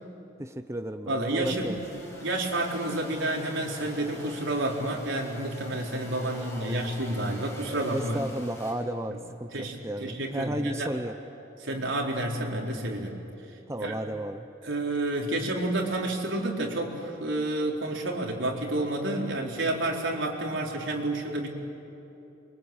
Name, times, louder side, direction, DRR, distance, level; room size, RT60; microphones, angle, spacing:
voice 1, 0.4-1.8 6.2-6.8 7.7-11.1 13.7-14.5, right 1 dB, 15° right, 8 dB, 0.7 m, -34 dB
voice 2, 1.1-8.3 9.1-9.2 9.5-10.9 11.6-13.2 13.8-14.0 14.6-21.5, right 1 dB, 85° right, 0 dB, 4.2 m, -30 dB
sound 1, 1.3-8.7, left 1 dB, 15° left, 6.1 m, -45 dB
27.5 x 24.0 x 8.8 m, 2.9 s
head